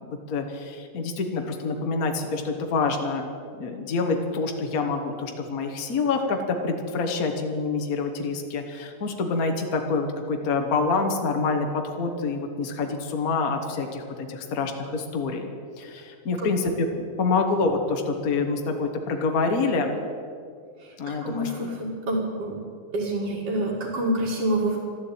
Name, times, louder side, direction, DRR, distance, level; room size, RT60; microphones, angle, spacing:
voice 1, 0.1-3.3 3.6-15.5 15.8-20.0 21.0-21.7, left 4 dB, 60° left, 4 dB, 0.9 m, -27 dB
voice 2, 20.8-22.6 22.9-24.8, right 1 dB, 50° right, -7 dB, 3.0 m, -27 dB
13.0 x 12.5 x 8.6 m, 2.2 s
omnidirectional pair, 3.6 m